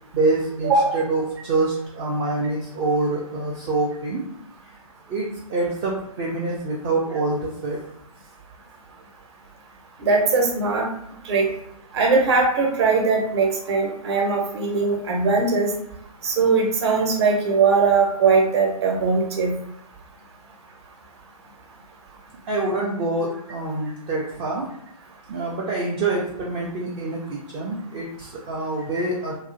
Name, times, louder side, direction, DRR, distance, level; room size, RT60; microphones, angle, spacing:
voice 1, 0.1-4.2 5.1-7.8 22.5-24.7 25.3-29.4, right 2 dB, 20° right, -4 dB, 0.3 m, -26 dB
voice 2, 0.6-1.0 10.0-10.9 11.2-11.5 11.9-15.7 16.2-19.5 28.9-29.0, right 4 dB, 45° right, 0 dB, 0.8 m, -20 dB
2.7 x 2.4 x 2.5 m, 0.74 s
figure-of-eight pair, 125°, 19 cm